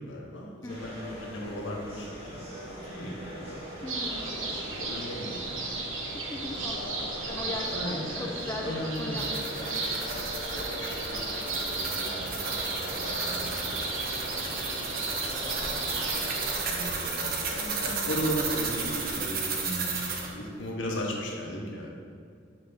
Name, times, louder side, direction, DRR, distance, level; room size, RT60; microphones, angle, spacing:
voice 1, 0.0-3.6 4.3-5.7 6.3-6.7 7.2-8.0 8.6-9.3 10.5-11.2 11.6-13.9 14.1-17.7 18.0-22.0, equal, 80° left, -1 dB, 1.0 m, -38 dB
voice 2, 0.6-1.1 3.8-4.4 6.3-9.8 17.9-18.2, left 2 dB, 15° left, 1 dB, 0.3 m, -39 dB
sound 1, 0.7-19.2, equal, 30° right, 1.3 m, -41 dB
sound 2, 3.9-16.5, right 2 dB, 85° right, 0.9 m, -34 dB
sound 3, 8.9-20.3, right 4 dB, 50° right, 0.7 m, -34 dB
5.8 x 3.3 x 5.2 m, 2.3 s
head